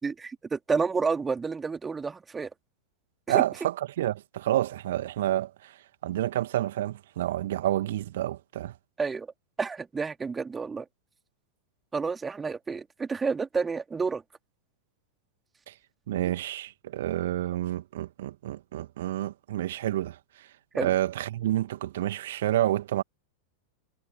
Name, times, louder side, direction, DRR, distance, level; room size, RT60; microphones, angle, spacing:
voice 1, 0.0-2.5 3.3-3.4 9.0-9.3 9.6-10.8 11.9-14.2 20.7-20.9, right 5 dB, 15° right, 3.0 m, -30 dB
voice 2, 3.3-5.7 6.0-8.7 15.7-15.8 16.1-20.2 20.8-23.0, right 13 dB, 55° right, 2.2 m, -29 dB
figure-of-eight pair, 90°, 0 cm